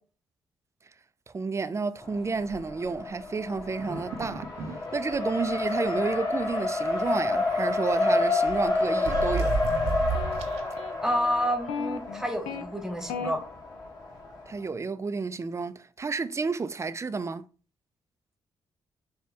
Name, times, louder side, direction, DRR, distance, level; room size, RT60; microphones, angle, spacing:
voice 1, 1.3-4.5 4.9-9.6 14.5-17.5, right 4 dB, 25° right, 0.4 m, -31 dB
Race car auto racing, 2.0-14.6, left 2 dB, 40° left, 1.8 m, -30 dB
sound 1, 3.8-4.8 5.1-5.2 5.5-5.7 6.9-7.9 8.5-10.7, right 4 dB, 75° right, 0.6 m, -33 dB
sound 2, 7.9-9.4 10.1-12.6 13.1-13.3, left 6 dB, 80° left, 0.4 m, -38 dB
voice 2, 11.0-13.4, equal, 5° right, 1.2 m, -29 dB
4.6 x 2.2 x 3.3 m
hypercardioid pair, 45°, 11 cm